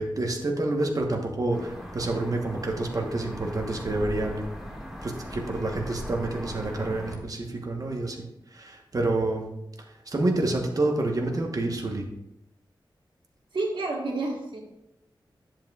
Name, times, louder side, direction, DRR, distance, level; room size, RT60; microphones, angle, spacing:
voice 1, 0.0-4.5 5.0-8.2 8.5-9.5 10.1-12.1, right 2 dB, 45° right, 2 dB, 1.1 m, -28 dB
sound 1, 1.5-7.2, equal, 5° right, 1.8 m, -39 dB
voice 2, 13.5-14.7, right 2 dB, 70° right, 0 dB, 1.4 m, -29 dB
10.5 x 7.2 x 2.4 m, 0.87 s
wide cardioid pair, 90°, 9 cm